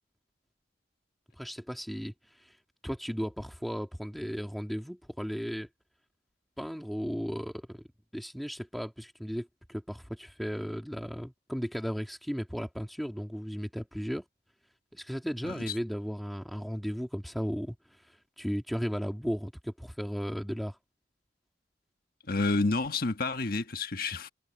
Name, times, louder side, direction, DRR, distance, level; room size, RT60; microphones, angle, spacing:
voice 1, 1.4-2.5 2.8-5.7 6.6-7.8 8.1-14.2 14.9-17.8 18.4-20.8, equal, ahead, 2.3 m, -35 dB
voice 2, 22.3-24.3, left 3 dB, 55° left, 1.4 m, -29 dB
head